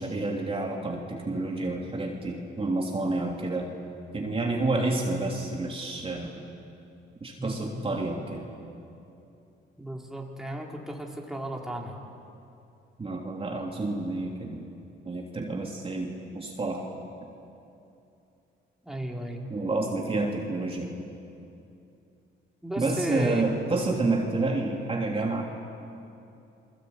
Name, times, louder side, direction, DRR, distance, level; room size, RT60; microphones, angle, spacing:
voice 1, 0.0-3.7 4.1-6.4 7.2-8.5 13.0-14.7 15.0-16.8 19.5-20.9 22.8-25.4, right 2 dB, 30° right, 0 dB, 3.2 m, -29 dB
voice 2, 7.4-7.9 9.8-12.0 18.8-19.5 22.6-23.4, right 1 dB, ahead, -1 dB, 4.0 m, -35 dB
28.5 x 22.5 x 8.7 m, 2.7 s
cardioid pair, 90°, 20 cm